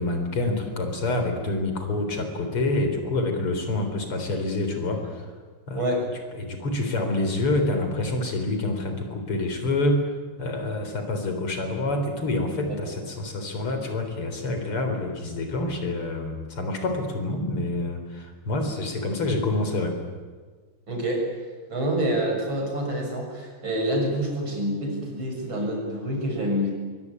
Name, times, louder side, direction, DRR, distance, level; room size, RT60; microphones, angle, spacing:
voice 1, 0.0-5.3 5.7-5.9 6.3-20.0, left 2 dB, 80° left, 5 dB, 4.9 m, -27 dB
voice 2, 20.9-21.2 21.7-26.7, equal, 60° right, 1 dB, 7.4 m, -27 dB
24.0 x 23.0 x 9.6 m, 1.5 s
omnidirectional pair, 2.4 m